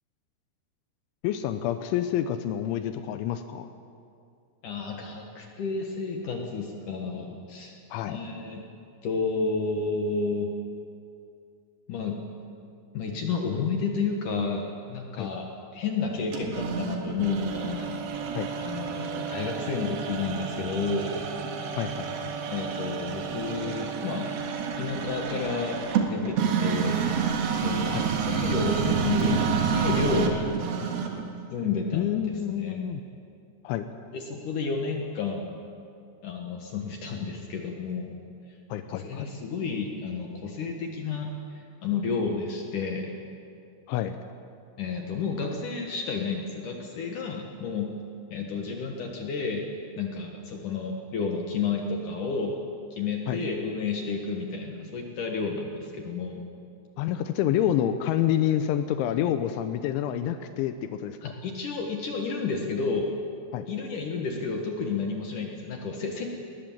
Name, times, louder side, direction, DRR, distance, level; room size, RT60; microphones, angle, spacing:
voice 1, 1.2-3.7 7.9-8.2 15.2-15.3 18.3-18.5 21.8-22.3 27.9-28.1 31.9-33.0 33.6-33.9 38.7-39.3 43.9-44.2 53.3-53.4 57.0-61.3 63.5-63.6, left 11 dB, 85° left, 9 dB, 3.2 m, -28 dB
voice 2, 4.6-7.8 8.1-8.6 9.0-10.5 11.9-12.2 12.9-18.0 18.6-21.1 22.5-24.3 24.8-25.8 26.0-27.1 27.6-30.5 31.5-32.8 34.1-35.6 36.2-38.2 38.9-43.1 44.8-47.9 48.3-49.7 50.0-52.5 52.9-56.5 61.2-63.1 63.7-66.3, left 4 dB, 60° left, 2 dB, 2.3 m, -31 dB
sound 1, 16.3-31.3, right 7 dB, 65° right, 3.2 m, -29 dB
20.0 x 19.5 x 7.3 m, 2.5 s
omnidirectional pair, 5.3 m